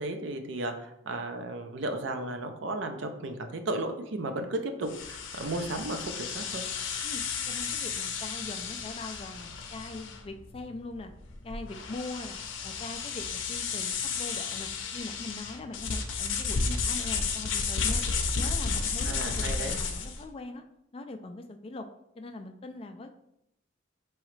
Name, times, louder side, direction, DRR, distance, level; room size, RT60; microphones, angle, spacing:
voice 1, 0.0-6.6 19.0-19.8, right 2 dB, 75° right, 6 dB, 0.5 m, -34 dB
sound 1, 4.9-20.2, left 5 dB, 80° left, 0.6 m, -33 dB
voice 2, 7.5-11.1 11.4-18.0 18.3-20.6 20.9-21.9 22.2-23.1, left 2 dB, 30° left, 6 dB, 0.3 m, -41 dB
4.8 x 3.1 x 3.1 m, 0.80 s
head